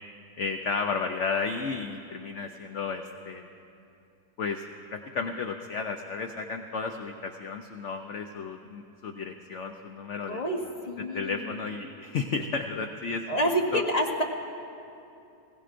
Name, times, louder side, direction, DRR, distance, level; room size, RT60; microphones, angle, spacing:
voice 1, 0.4-3.5 4.4-4.7 4.9-10.4 11.1-13.2 13.7-13.8, left 5 dB, 70° left, 5 dB, 0.7 m, -33 dB
voice 2, 10.3-11.5 13.3-14.2, equal, 30° left, 1 dB, 0.8 m, -28 dB
21.0 x 16.5 x 2.5 m, 2.7 s
omnidirectional pair, 1.8 m